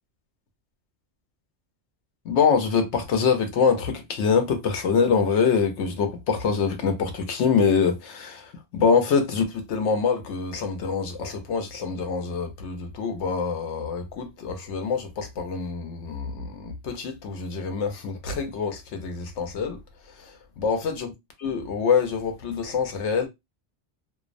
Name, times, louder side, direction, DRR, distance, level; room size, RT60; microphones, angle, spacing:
voice 1, 2.2-19.8 20.1-21.1 21.4-23.3, left 5 dB, 90° left, 0.9 m, -25 dB
2.5 x 2.0 x 2.4 m
omnidirectional pair, 1.1 m